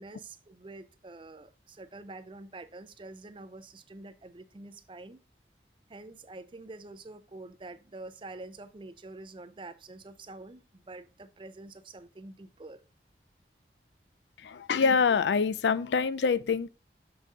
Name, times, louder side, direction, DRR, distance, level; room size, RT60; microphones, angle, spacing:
voice 1, 0.0-5.2 5.9-12.8, right 2 dB, 30° right, 0.5 m, -46 dB
voice 2, 14.4-16.7, left 5 dB, 80° left, 0.4 m, -25 dB
6.7 x 5.5 x 3.7 m
head